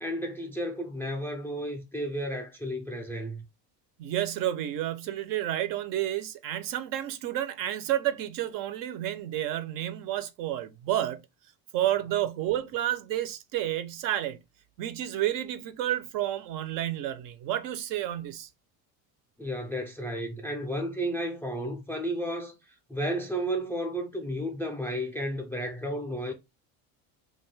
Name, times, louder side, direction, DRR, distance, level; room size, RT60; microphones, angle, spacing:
voice 1, 0.0-3.4 19.4-26.3, equal, 5° left, 0.3 m, -33 dB
voice 2, 4.0-11.2 11.7-14.4 14.8-18.5, right 12 dB, 55° right, 0.5 m, -30 dB
2.5 x 2.3 x 3.0 m
cardioid pair, 125°, 42 cm